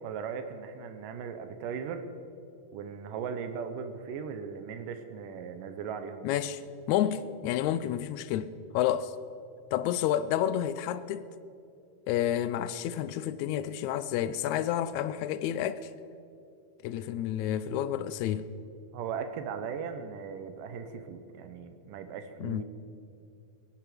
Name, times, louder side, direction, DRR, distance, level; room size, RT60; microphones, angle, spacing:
voice 1, 0.0-2.1 2.7-6.3 18.9-22.6, right 6 dB, 90° right, 2.6 m, -38 dB
voice 2, 6.2-6.6 6.9-9.1 9.7-11.3 12.1-15.9 16.8-18.5 22.4-22.6, left 11 dB, 80° left, 1.8 m, -30 dB
22.0 x 11.0 x 5.1 m
omnidirectional pair, 3.7 m